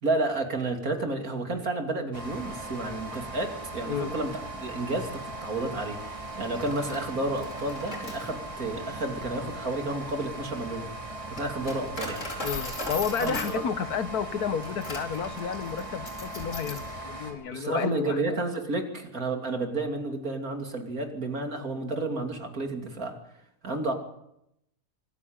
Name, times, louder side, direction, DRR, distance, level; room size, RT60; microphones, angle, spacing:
voice 1, 0.0-10.9 11.3-12.2 13.2-13.6 17.5-23.2 23.6-23.9, right 2 dB, 60° right, 3.3 m, -31 dB
sound 1, 2.1-17.3, right 2 dB, 20° right, 4.5 m, -39 dB
Coin (dropping), 6.4-16.9, left 2 dB, 50° left, 4.5 m, -40 dB
voice 2, 12.4-18.2, left 7 dB, 75° left, 1.6 m, -31 dB
25.0 x 14.5 x 8.9 m
omnidirectional pair, 1.7 m